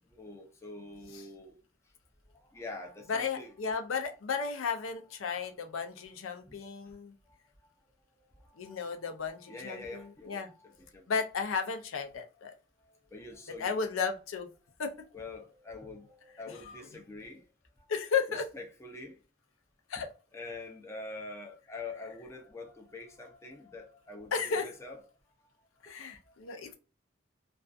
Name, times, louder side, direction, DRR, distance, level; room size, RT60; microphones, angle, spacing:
voice 1, 0.1-1.6 2.3-3.5 6.8-6.9 8.2-9.1 9.5-11.1 13.1-13.8 15.1-17.4 18.5-19.2 20.3-25.0 25.9-26.0, left 3 dB, 15° left, 0.4 m, -45 dB
voice 2, 3.1-7.1 8.6-10.5 11.1-12.5 13.6-14.5 14.8-14.9 16.5-16.8 17.9-18.5 19.9-20.1 24.3-24.7 25.8-26.7, left 5 dB, 90° left, 0.5 m, -34 dB
2.4 x 2.3 x 2.4 m
head